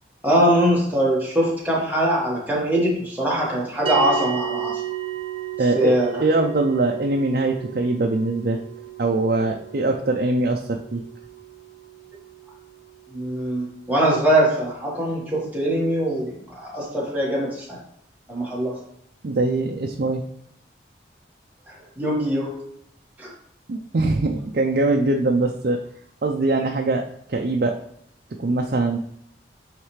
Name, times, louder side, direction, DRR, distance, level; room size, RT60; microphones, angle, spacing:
voice 1, 0.2-4.8 5.7-6.2 13.1-17.8 18.3-18.8 21.7-22.6 23.2-23.3, right 1 dB, 10° right, -5 dB, 1.5 m, -22 dB
sound 1, 3.9-14.4, right 9 dB, 30° right, 1.1 m, -34 dB
voice 2, 5.6-8.6 9.0-11.0 19.2-20.2 23.7-25.8 26.2-27.0 27.3-27.8 28.4-29.0, right 2 dB, 55° right, 2 dB, 0.5 m, -22 dB
9.0 x 3.2 x 3.2 m, 0.73 s
head